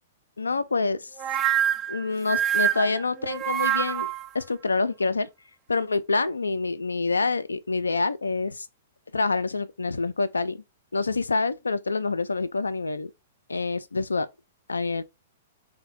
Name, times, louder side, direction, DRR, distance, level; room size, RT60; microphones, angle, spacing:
voice 1, 0.4-1.1 1.9-4.1 4.3-5.3 5.7-8.7 9.1-10.6 10.9-13.1 13.5-14.3 14.7-15.0, left 3 dB, 80° left, 0.4 m, -26 dB
sound 1, 1.2-4.3, right 9 dB, 25° right, 0.4 m, -25 dB
3.9 x 2.2 x 4.1 m
figure-of-eight pair, 110°, 0 cm